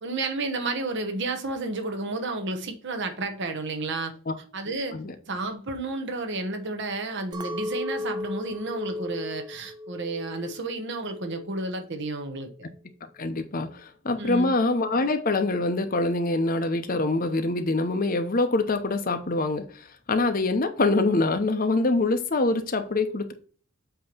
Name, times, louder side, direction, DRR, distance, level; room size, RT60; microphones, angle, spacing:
voice 1, 0.0-4.1 4.5-5.0 5.3-12.5 14.2-14.5, right 3 dB, 50° right, 1.0 m, -31 dB
Chink clink, 7.3-11.7 12.1-12.7, left 2 dB, 20° right, 0.5 m, -36 dB
voice 2, 13.2-19.6 20.1-23.3, left 2 dB, 40° left, 0.8 m, -24 dB
8.0 x 3.0 x 5.2 m
head